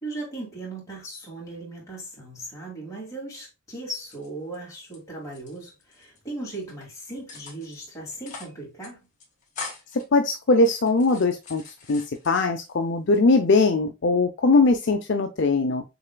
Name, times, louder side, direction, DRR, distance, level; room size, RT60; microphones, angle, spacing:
voice 1, 0.0-9.1, right 2 dB, 15° left, 2.5 m, -37 dB
sound 1, 3.9-5.0 5.2-6.2 6.5-6.9 7.3-7.8 8.1-8.6 8.8-8.9 9.2-10.0 10.5-12.7 13.1-13.8, left 4 dB, 35° left, 1.9 m, -42 dB
voice 2, 9.9-11.6 11.9-15.8, left 3 dB, 55° left, 0.5 m, -21 dB
6.9 x 3.3 x 2.2 m
head